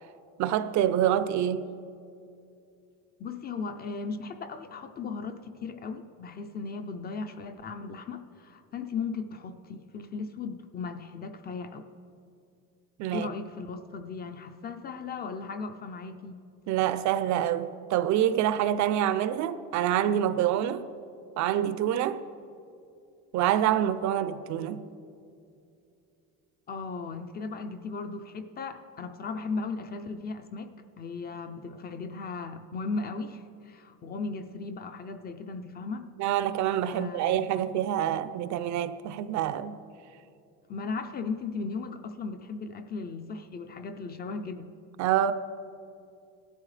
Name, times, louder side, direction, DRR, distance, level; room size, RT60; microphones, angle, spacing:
voice 1, 0.4-1.7 13.0-13.3 16.7-20.9 21.4-22.2 23.3-24.8 36.2-39.8 45.0-45.3, right 11 dB, 55° right, 0.5 m, -26 dB
voice 2, 3.2-11.9 13.1-16.4 26.7-36.0 36.9-37.5 40.7-44.7, left 4 dB, 25° left, 0.4 m, -37 dB
18.5 x 12.5 x 3.2 m
cardioid pair, 170°, 36 cm